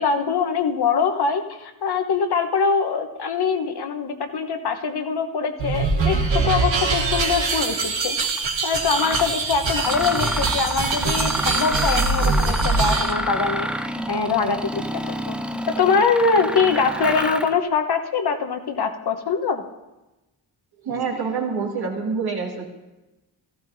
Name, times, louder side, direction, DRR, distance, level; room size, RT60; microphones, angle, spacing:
voice 1, 0.0-8.3 8.6-13.8 14.1-15.0 15.3-15.4 15.7-19.6, left 5 dB, 55° left, 6 dB, 1.1 m, -23 dB
sound 1, 5.6-13.1, right 3 dB, 70° right, 1.5 m, -23 dB
Mechanisms, 8.3-8.4 8.9-9.3 9.7-17.6, equal, ahead, 0.5 m, -28 dB
voice 2, 20.8-22.7, right 5 dB, 50° right, -1 dB, 2.4 m, -26 dB
14.5 x 12.5 x 2.7 m, 1.1 s
supercardioid pair, 50°, 47 cm